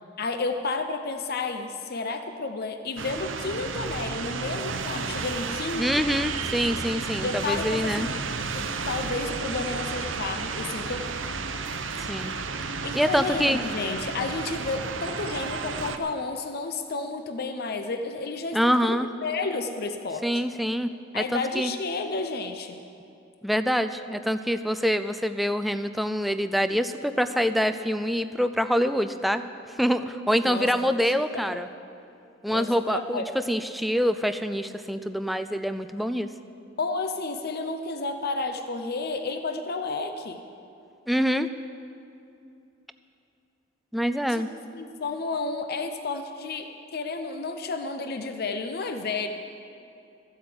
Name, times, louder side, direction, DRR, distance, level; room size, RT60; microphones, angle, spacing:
voice 1, 0.2-6.1 7.2-8.1 8.5-11.1 12.8-20.4 21.1-22.8 30.5-30.9 31.3-31.7 32.5-33.2 36.8-40.4 44.3-44.4 44.7-49.3, left 3 dB, 55° left, 7 dB, 0.7 m, -31 dB
sound 1, 3.0-16.0, right 4 dB, 75° right, 0.8 m, -32 dB
voice 2, 5.8-8.1 12.1-12.4 13.0-13.6 18.5-19.1 20.2-21.7 23.4-31.7 32.4-36.3 41.1-41.5 43.9-44.5, equal, ahead, 9 dB, 0.4 m, -25 dB
14.5 x 8.1 x 7.8 m, 2.6 s
head